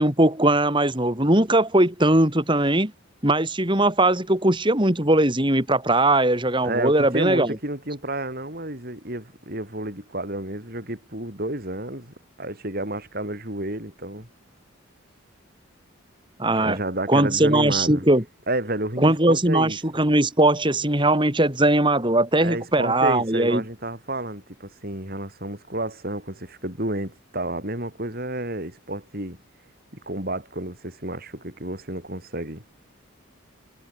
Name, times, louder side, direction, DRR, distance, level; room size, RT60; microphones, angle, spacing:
voice 1, 0.0-2.9 3.2-7.6 16.4-16.8 17.1-18.2 19.0-23.6, right 1 dB, 25° right, 3.5 m, -20 dB
voice 2, 6.6-14.3 16.6-18.1 18.5-19.8 22.4-29.4 30.1-32.6, right 1 dB, 45° right, 6.8 m, -30 dB
head